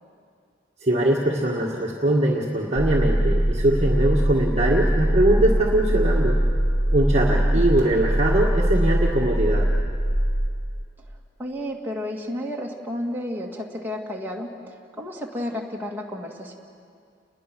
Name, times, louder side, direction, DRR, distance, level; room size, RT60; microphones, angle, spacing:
voice 1, 0.8-6.4 6.9-9.7, right 1 dB, 35° right, -3 dB, 1.7 m, -22 dB
sound 1, 2.8-10.5, right 1 dB, 35° left, 3.9 m, -22 dB
voice 2, 7.3-7.7 11.4-16.5, left 1 dB, 10° right, -2 dB, 2.1 m, -32 dB
30.0 x 21.0 x 6.1 m, 2.2 s
head